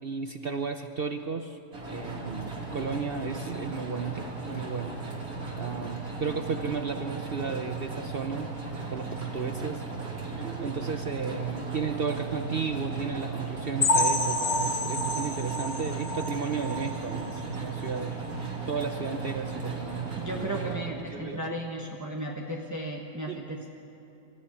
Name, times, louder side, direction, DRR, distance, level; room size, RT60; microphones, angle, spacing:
voice 1, 0.0-1.6 1.9-5.0 5.6-8.5 8.9-9.8 10.3-18.2 18.7-21.6 23.3-23.6, right 5 dB, 65° right, 7 dB, 0.5 m, -34 dB
sound 1, 1.7-20.7, right 4 dB, 50° right, 3.3 m, -36 dB
sound 2, 13.8-17.4 17.8-18.0 18.3-18.4 18.9-19.0, left 1 dB, 45° left, 1.0 m, -29 dB
voice 2, 20.2-23.7, right 1 dB, 10° right, 0 dB, 0.9 m, -35 dB
23.0 x 14.5 x 9.7 m, 2.9 s
omnidirectional pair, 2.0 m